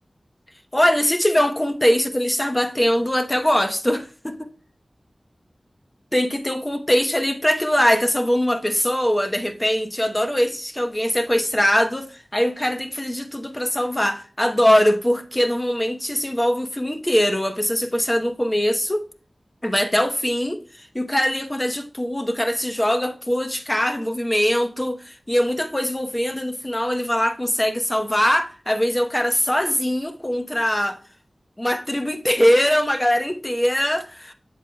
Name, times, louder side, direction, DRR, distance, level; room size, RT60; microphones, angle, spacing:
voice 1, 0.7-4.5 6.1-19.0 19.6-31.0 31.6-34.3, equal, 20° left, 0.9 m, -22 dB
8.0 x 7.1 x 2.2 m
wide cardioid pair, 65°, 0 cm